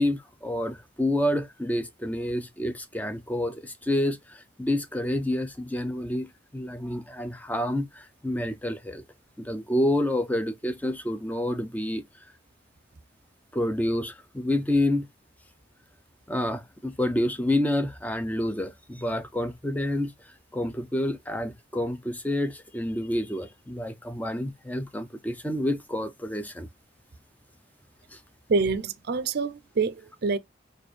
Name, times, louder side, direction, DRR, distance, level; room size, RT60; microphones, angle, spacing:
voice 1, 0.0-9.0 9.4-12.0 13.5-15.1 16.3-20.1 20.5-26.7 28.1-28.2, left 1 dB, 10° left, 0.5 m, -28 dB
voice 2, 28.5-30.4, right 4 dB, 55° right, 0.5 m, -26 dB
4.3 x 2.4 x 3.2 m
head